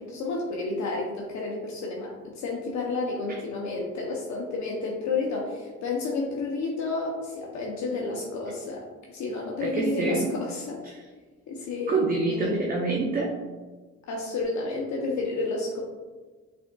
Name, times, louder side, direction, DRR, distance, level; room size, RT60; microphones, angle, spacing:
voice 1, 0.0-10.8 11.5-12.0 12.3-12.6 14.1-15.8, left 3 dB, 70° left, -2 dB, 0.7 m, -31 dB
voice 2, 9.6-10.3 10.8-10.9 11.9-13.4, right 3 dB, 30° right, 0 dB, 0.5 m, -26 dB
5.0 x 3.5 x 2.2 m, 1.3 s
cardioid pair, 90°, 30 cm